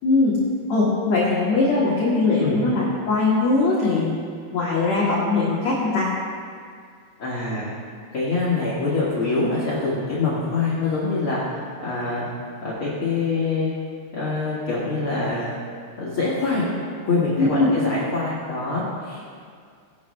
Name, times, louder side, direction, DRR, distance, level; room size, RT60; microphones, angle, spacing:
voice 1, 0.0-0.4 0.7-4.1 4.5-6.1 17.4-17.7, left 3 dB, 60° left, -6 dB, 1.9 m, -20 dB
voice 2, 7.2-7.6 8.1-12.3 12.6-13.7 14.1-15.5 16.0-16.7 17.0-19.2, left 3 dB, 80° left, -8 dB, 1.1 m, -24 dB
18.5 x 11.0 x 3.2 m, 2.1 s
omnidirectional pair, 5.4 m